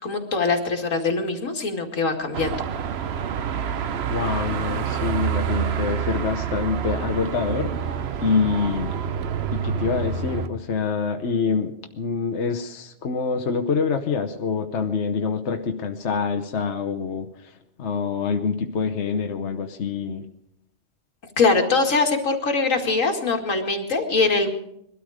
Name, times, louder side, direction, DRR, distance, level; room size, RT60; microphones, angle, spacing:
voice 1, 0.0-2.6 21.4-24.5, left 3 dB, 90° left, 3 dB, 2.5 m, -22 dB
Car passing by / Traffic noise roadway noise / Engine, 2.3-10.5, right 8 dB, 60° right, 0.9 m, -27 dB
voice 2, 4.1-7.7 8.2-8.9 9.5-17.3 17.8-20.3, left 5 dB, 60° left, 6 dB, 1.3 m, -26 dB
21.0 x 13.0 x 4.9 m, 0.76 s
omnidirectional pair, 1.3 m